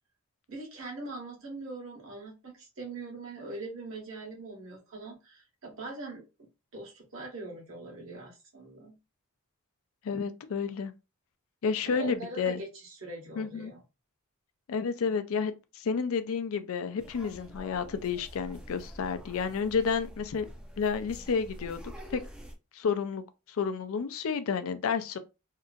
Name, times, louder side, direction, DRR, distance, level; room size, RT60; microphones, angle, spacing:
voice 1, 0.5-6.2 6.7-8.9 11.9-13.8, right 2 dB, 65° right, 1.1 m, -42 dB
voice 2, 10.0-10.9 11.6-12.6 13.4-13.7 14.7-20.5 20.8-22.2 22.7-23.2 23.5-25.2, left 5 dB, 70° left, 0.4 m, -31 dB
sound 1, 17.0-22.5, equal, 5° right, 0.4 m, -46 dB
2.8 x 2.5 x 2.4 m
head